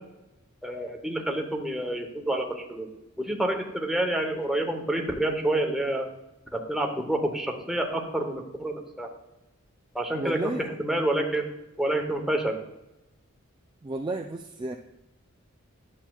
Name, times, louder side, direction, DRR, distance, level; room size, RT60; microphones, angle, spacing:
voice 1, 0.6-2.9 3.2-6.1 6.5-9.1 9.9-11.5 11.8-12.5, right 1 dB, ahead, 1 dB, 0.9 m, -28 dB
voice 2, 10.1-10.7 13.8-14.8, right 2 dB, 20° right, 3 dB, 0.3 m, -32 dB
9.9 x 7.3 x 2.3 m, 0.95 s
head